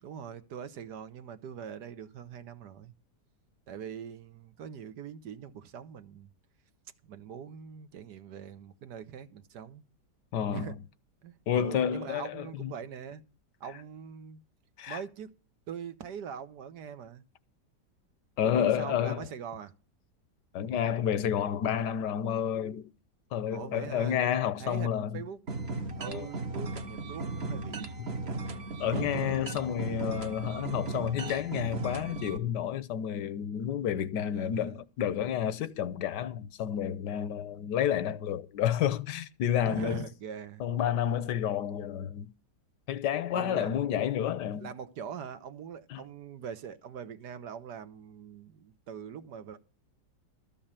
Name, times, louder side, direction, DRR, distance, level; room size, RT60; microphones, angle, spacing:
voice 1, 0.0-2.9 3.7-6.3 7.0-9.8 10.5-10.7 11.2-13.2 13.6-14.4 14.9-15.3 15.7-17.2 18.4-19.7 23.5-24.2 24.6-25.4 26.0-28.5 28.9-29.3 34.3-34.7 39.6-40.6 43.3-44.0 44.6-49.6, right 8 dB, 75° right, 1.6 m, -42 dB
voice 2, 10.3-10.8 11.5-12.7 14.8-15.0 18.4-19.3 20.5-22.9 23.3-25.2 26.1-26.3 28.0-28.1 28.8-40.0 40.6-42.3 42.9-44.7 45.9-46.0, left 9 dB, 80° left, 1.4 m, -30 dB
sound 1, 25.5-32.4, right 3 dB, 40° right, 1.3 m, -36 dB
13.5 x 5.5 x 8.8 m
omnidirectional pair, 1.8 m